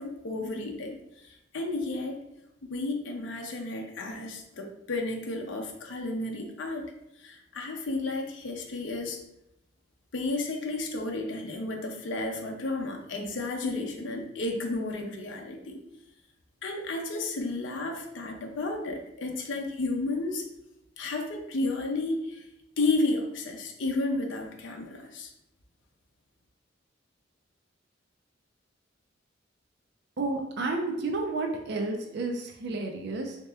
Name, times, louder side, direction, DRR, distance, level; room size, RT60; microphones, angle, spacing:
voice 1, 0.0-2.2 2.7-9.2 10.1-15.8 16.6-20.4 21.0-22.4 22.8-25.3, left 2 dB, 70° left, 2 dB, 0.5 m, -32 dB
voice 2, 30.2-33.4, right 3 dB, 60° right, 2 dB, 0.4 m, -31 dB
3.3 x 2.8 x 3.3 m, 0.84 s
head